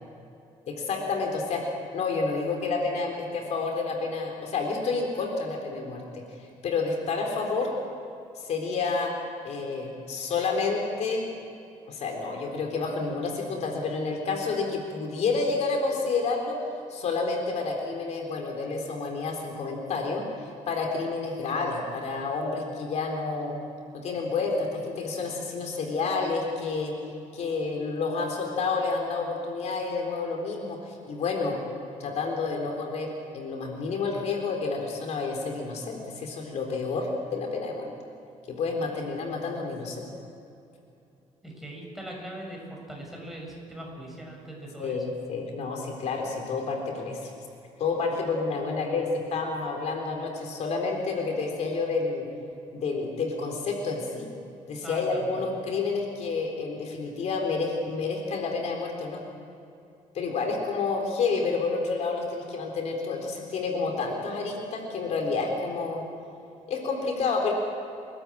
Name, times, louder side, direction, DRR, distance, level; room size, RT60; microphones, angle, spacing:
voice 1, 0.7-1.6 1.9-6.2 6.6-7.7 8.4-9.1 9.4-11.2 11.9-16.6 16.9-20.2 20.7-23.5 24.0-26.9 27.3-31.6 32.0-37.9 38.6-40.1 44.8-47.3 47.8-52.3 52.7-54.3 54.7-59.2 60.1-66.0 66.7-67.5, left 4 dB, 60° left, 1 dB, 3.8 m, -29 dB
voice 2, 41.4-45.0 54.8-55.5, right 1 dB, ahead, -2 dB, 6.9 m, -40 dB
30.0 x 13.0 x 8.6 m, 2.7 s
cardioid pair, 120°, 13 cm